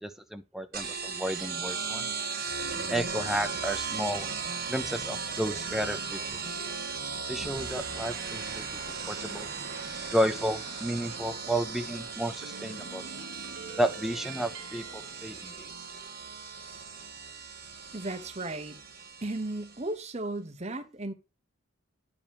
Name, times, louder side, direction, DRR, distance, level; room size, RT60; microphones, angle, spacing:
voice 1, 0.0-2.1 2.9-4.3 4.7-6.2 7.3-9.5 10.1-13.0 13.8-15.7, right 1 dB, ahead, 0.5 m, -32 dB
sound 1, 0.7-19.9, right 5 dB, 50° right, 2.0 m, -37 dB
sound 2, 7.4-16.0, right 5 dB, 65° right, 0.7 m, -46 dB
voice 2, 17.9-18.8 19.2-21.1, right 2 dB, 30° right, 0.9 m, -35 dB
9.8 x 4.9 x 3.5 m
head